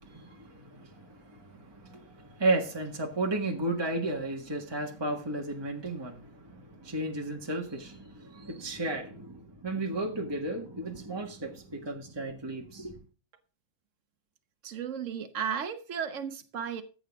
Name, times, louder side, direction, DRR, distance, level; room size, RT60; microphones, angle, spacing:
voice 1, 0.0-13.0, right 2 dB, 20° right, 1.7 m, -34 dB
voice 2, 14.6-16.8, right 7 dB, 75° right, 1.4 m, -34 dB
14.0 x 8.1 x 3.6 m
omnidirectional pair, 1.3 m